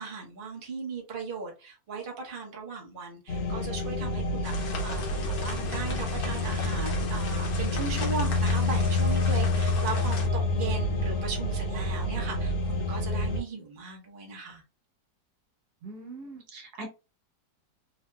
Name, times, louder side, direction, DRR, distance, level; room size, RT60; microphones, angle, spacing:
voice 1, 0.0-14.6, right 4 dB, 35° right, 1.1 m, -37 dB
sound 1, 3.3-13.4, left 2 dB, 85° left, 1.8 m, -28 dB
sound 2, 4.4-10.3, left 3 dB, 65° left, 1.3 m, -37 dB
voice 2, 15.8-16.9, right 2 dB, 70° right, 1.5 m, -41 dB
3.7 x 2.8 x 2.2 m
omnidirectional pair, 1.8 m